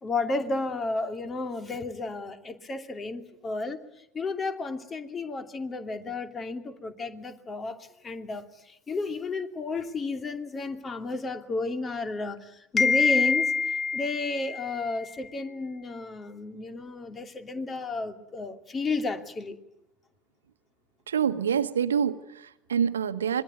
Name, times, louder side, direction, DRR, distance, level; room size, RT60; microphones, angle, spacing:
voice 1, 0.0-3.8 4.1-7.8 8.0-19.6, left 4 dB, 25° left, 8 dB, 2.8 m, -30 dB
voice 2, 21.1-23.4, right 7 dB, 75° right, 12 dB, 1.3 m, -26 dB
26.0 x 22.0 x 9.5 m, 0.82 s
figure-of-eight pair, 75°, 0 cm